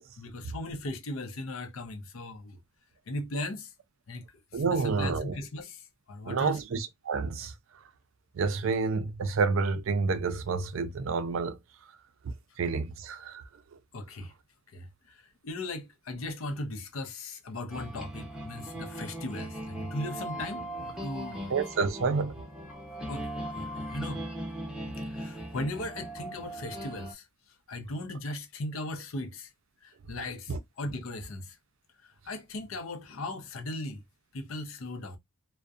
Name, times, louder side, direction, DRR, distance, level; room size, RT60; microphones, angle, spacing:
voice 1, 0.2-2.6 3.1-3.7 4.1-4.2 4.5-5.8 6.1-6.6 13.9-14.3 14.7-15.2 15.4-21.5 23.1-24.2 25.1-27.2 27.7-29.5 29.8-31.5 32.3-34.0 34.3-35.2, left 2 dB, 75° left, 0.6 m, -38 dB
voice 2, 4.5-5.4 6.3-7.5 8.4-11.5 12.6-13.4 21.5-22.3 30.5-30.6, right 4 dB, 65° right, 0.4 m, -29 dB
sound 1, 17.7-27.1, right 1 dB, 5° right, 0.6 m, -39 dB
2.6 x 2.1 x 2.4 m
head